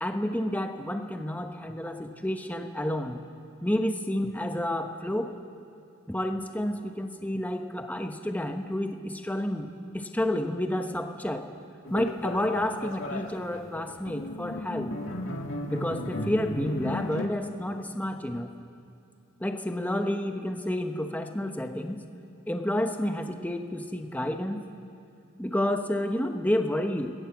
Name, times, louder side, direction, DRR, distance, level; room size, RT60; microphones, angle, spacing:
voice 1, 0.0-3.2 3.6-5.3 6.1-11.5 11.9-15.0 15.7-18.5 19.4-22.0 22.5-24.6 25.4-27.1, left 1 dB, 5° left, 5 dB, 1.1 m, -30 dB
sound 1, 11.8-17.3, left 1 dB, 60° left, 2.1 m, -35 dB
27.5 x 20.0 x 7.4 m, 2.6 s
head